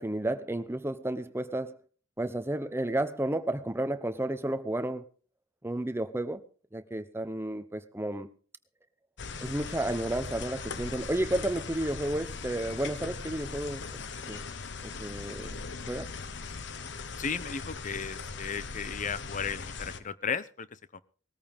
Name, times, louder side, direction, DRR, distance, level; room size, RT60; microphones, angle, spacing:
voice 1, 0.0-1.8 2.2-5.0 5.6-6.4 6.7-8.3 9.4-13.8 14.3-14.4 14.8-15.6 15.9-16.1, right 1 dB, 15° right, 0.9 m, -32 dB
sound 1, 9.2-20.0, left 4 dB, 65° left, 1.2 m, -39 dB
voice 2, 17.2-20.7 20.9-21.0, left 6 dB, 40° left, 0.8 m, -35 dB
19.5 x 14.0 x 3.6 m
head